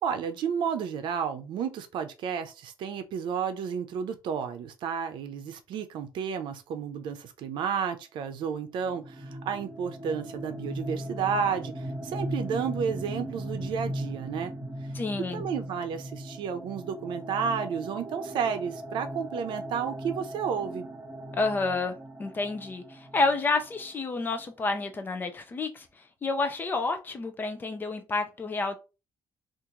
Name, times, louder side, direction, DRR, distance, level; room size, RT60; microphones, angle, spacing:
voice 1, 0.0-14.5 15.3-20.9, right 7 dB, 75° right, 0.6 m, -32 dB
sound 1, 8.8-24.4, right 1 dB, 20° right, 1.2 m, -38 dB
voice 2, 14.9-15.4 21.3-21.9 22.2-25.9 26.2-28.7, left 3 dB, 25° left, 0.5 m, -29 dB
2.9 x 2.5 x 3.7 m
cardioid pair, 175°, 8 cm